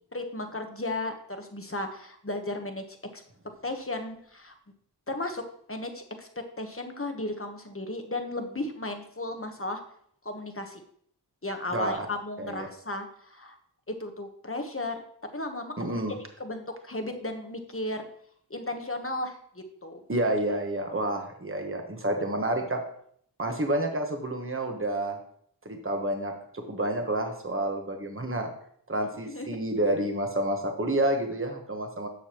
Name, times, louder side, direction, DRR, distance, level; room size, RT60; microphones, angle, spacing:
voice 1, 0.1-3.2 3.6-4.5 5.1-9.8 10.2-10.8 11.4-13.6 13.9-15.0 15.3-15.9 16.4-18.1 18.5-20.0 29.3-29.5, left 2 dB, 30° left, 5 dB, 1.1 m, -35 dB
voice 2, 11.7-12.1 12.4-12.7 15.8-16.1 20.1-22.8 23.4-25.2 25.6-28.5 28.9-32.1, right 1 dB, 30° right, 4 dB, 1.2 m, -29 dB
11.0 x 6.8 x 3.0 m, 0.64 s
wide cardioid pair, 45°, 42 cm